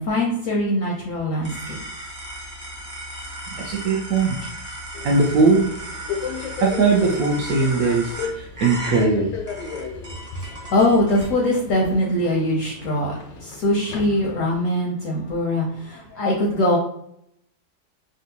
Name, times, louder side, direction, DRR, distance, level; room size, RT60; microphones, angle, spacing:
voice 1, 0.0-1.8 10.3-16.8, left 1 dB, 65° left, -2 dB, 0.8 m, -22 dB
sound 1, 1.4-11.3, right 1 dB, 35° right, 0.8 m, -35 dB
voice 2, 3.6-4.4 5.0-5.7 6.6-9.3, right 4 dB, 70° right, -2 dB, 0.8 m, -19 dB
Subway metro underground, 4.9-14.7, left 5 dB, 90° left, 1.3 m, -35 dB
3.7 x 2.2 x 2.7 m, 0.73 s
omnidirectional pair, 1.9 m